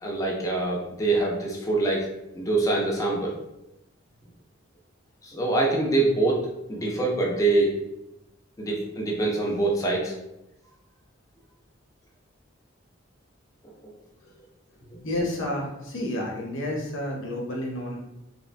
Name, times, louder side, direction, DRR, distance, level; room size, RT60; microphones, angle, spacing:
voice 1, 0.0-2.1 2.3-3.3 5.2-7.8 8.6-10.1 13.6-13.8, right 2 dB, 15° left, -1 dB, 0.4 m, -25 dB
voice 2, 14.9-18.0, left 1 dB, 70° left, -1 dB, 0.6 m, -30 dB
2.9 x 2.1 x 2.4 m, 0.89 s
head